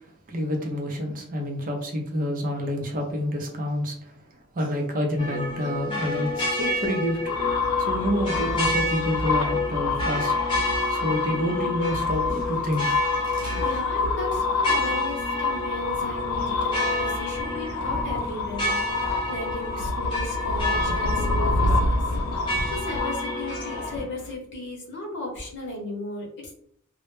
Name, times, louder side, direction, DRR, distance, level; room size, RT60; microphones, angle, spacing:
voice 1, 0.3-4.0 4.5-7.3 7.8-10.3 10.9-13.6, equal, 40° right, 1 dB, 0.5 m, -28 dB
sound 1, 5.2-24.0, left 1 dB, 25° left, 0.8 m, -30 dB
sound 2, 7.3-24.3, left 3 dB, 90° left, 0.3 m, -27 dB
voice 2, 13.6-26.5, left 1 dB, 55° left, -1 dB, 0.8 m, -36 dB
2.1 x 2.0 x 3.0 m, 0.65 s
head